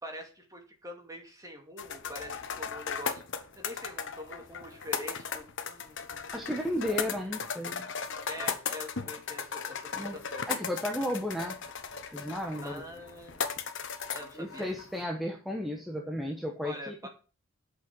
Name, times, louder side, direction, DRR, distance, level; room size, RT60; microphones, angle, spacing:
voice 1, 0.0-3.3 3.6-7.0 8.3-10.4 12.6-13.5 14.1-14.7 16.6-17.1, equal, 15° right, 2 dB, 2.4 m, -44 dB
sound 1, 1.8-15.0, left 6 dB, 60° left, 1.2 m, -37 dB
voice 2, 6.3-7.9 9.9-10.1 10.5-11.6 12.1-12.8 14.4-17.1, equal, ahead, 1 dB, 1.2 m, -34 dB
8.4 x 6.6 x 6.1 m, 0.36 s
head